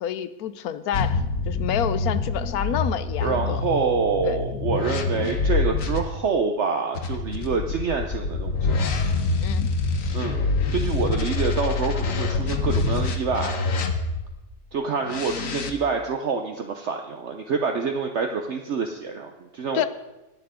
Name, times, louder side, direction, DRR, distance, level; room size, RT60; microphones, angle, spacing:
voice 1, 0.0-3.6 4.2-4.4 9.4-9.7 19.7-19.9, left 10 dB, 85° left, 14 dB, 1.2 m, -28 dB
sound 1, 0.9-6.0 6.9-14.3 15.0-15.7, left 3 dB, 65° left, 1.5 m, -26 dB
voice 2, 3.2-9.0 10.1-13.6 14.7-19.9, right 5 dB, 55° right, 4 dB, 1.1 m, -27 dB
19.0 x 7.0 x 5.1 m, 1.0 s
omnidirectional pair, 1.5 m